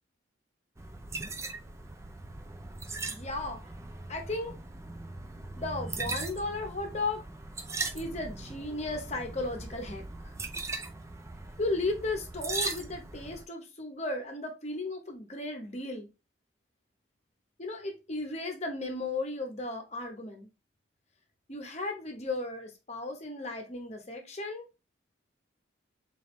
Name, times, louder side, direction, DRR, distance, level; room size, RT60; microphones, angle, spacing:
sound 1, 0.8-13.5, right 3 dB, 15° right, 0.3 m, -39 dB
voice 1, 3.1-3.7 4.1-4.6 5.6-7.2 7.9-10.0 11.6-16.1 17.6-20.5 21.5-24.7, left 2 dB, 35° left, 0.9 m, -35 dB
3.8 x 3.5 x 3.1 m
head